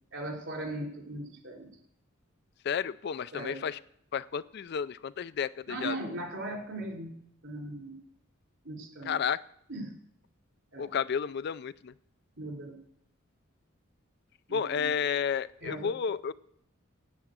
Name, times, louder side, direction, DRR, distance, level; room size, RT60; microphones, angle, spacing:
voice 1, 0.1-1.7 3.3-3.6 5.7-7.1 7.4-8.0 8.6-9.2 9.7-9.9 10.7-10.9 12.4-12.8 14.5-15.0 15.6-15.9, right 1 dB, 65° right, 0 dB, 3.6 m, -38 dB
voice 2, 2.6-3.8 4.1-6.2 9.1-9.4 10.8-11.9 14.5-16.3, left 7 dB, 50° left, 16 dB, 0.4 m, -32 dB
9.5 x 8.6 x 8.0 m, 0.71 s
head